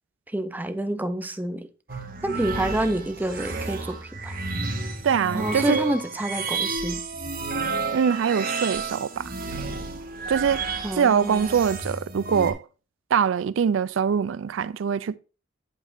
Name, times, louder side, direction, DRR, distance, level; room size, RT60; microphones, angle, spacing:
voice 1, 0.3-1.7 2.2-4.4 5.3-7.0 10.8-11.6, right 1 dB, 10° right, 0.6 m, -28 dB
Snake-Scape, 1.9-12.5, right 4 dB, 50° right, 1.5 m, -31 dB
voice 2, 5.0-5.8 7.9-9.3 10.3-10.6 10.9-12.6 13.1-15.2, right 7 dB, 75° right, 0.4 m, -23 dB
8.5 x 8.0 x 2.6 m
head